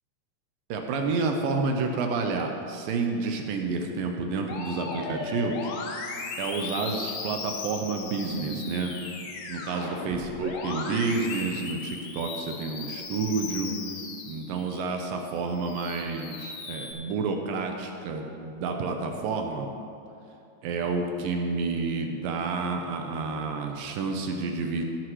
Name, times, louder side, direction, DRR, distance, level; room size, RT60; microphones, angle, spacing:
voice 1, 0.7-5.7 6.4-8.9 9.5-13.7 14.3-19.7 20.6-24.8, right 4 dB, 80° right, 3 dB, 2.1 m, -29 dB
Musical instrument, 4.5-14.9 15.4-16.9, left 4 dB, 85° left, 3.4 m, -37 dB
16.5 x 10.0 x 3.1 m, 2.7 s
omnidirectional pair, 5.0 m